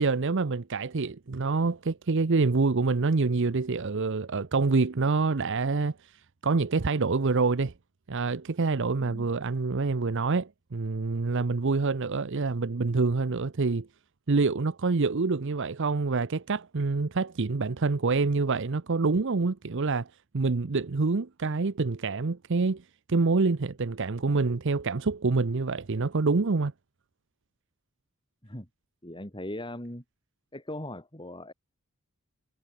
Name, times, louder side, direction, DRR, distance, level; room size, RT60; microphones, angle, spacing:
voice 1, 0.0-7.7 8.1-13.9 14.3-20.1 20.3-22.8 23.1-26.7, right 4 dB, 60° right, 0.7 m, -26 dB
voice 2, 29.0-30.0 30.5-31.5, left 1 dB, 20° left, 6.9 m, -39 dB
head